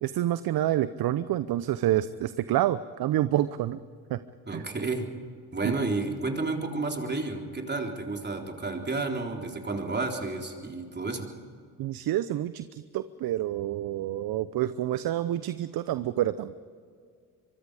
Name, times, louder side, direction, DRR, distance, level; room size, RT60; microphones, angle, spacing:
voice 1, 0.0-3.8 4.1-4.2 4.5-4.6 5.6-5.7 11.8-16.6, right 13 dB, 60° right, 14 dB, 0.8 m, -28 dB
voice 2, 4.5-5.1 5.5-11.3, right 3 dB, 25° right, 2 dB, 3.8 m, -31 dB
25.0 x 23.5 x 5.0 m, 2.1 s
hypercardioid pair, 60°, 41 cm